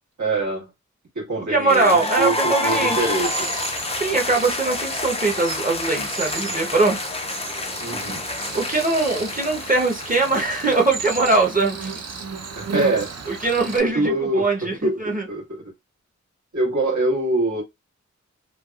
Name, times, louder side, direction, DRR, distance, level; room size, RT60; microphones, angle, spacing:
voice 1, 0.2-0.7 1.2-3.6 7.8-8.2 12.6-13.1 13.8-15.0 15.3-15.6 16.5-17.6, right 2 dB, 80° right, 1.6 m, -24 dB
voice 2, 1.5-3.1 3.9-7.0 8.5-12.0 13.3-15.3, right 3 dB, 30° right, 0.8 m, -21 dB
sound 1, 1.7-11.5, left 2 dB, 20° left, 0.3 m, -28 dB
Cricket, 2.7-13.8, right 5 dB, 60° right, 0.6 m, -34 dB
3.3 x 2.3 x 2.3 m
wide cardioid pair, 70°, 30 cm